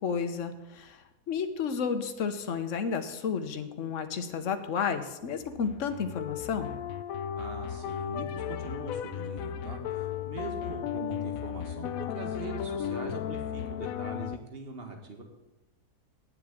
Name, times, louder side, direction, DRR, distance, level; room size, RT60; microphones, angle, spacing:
voice 1, 0.0-6.7, left 6 dB, 55° left, 8 dB, 1.3 m, -32 dB
sound 1, 5.3-14.4, left 9 dB, 70° left, 0.9 m, -35 dB
voice 2, 7.4-15.2, right 3 dB, 35° right, 4 dB, 1.9 m, -42 dB
9.6 x 7.6 x 8.5 m, 1.0 s
omnidirectional pair, 1.7 m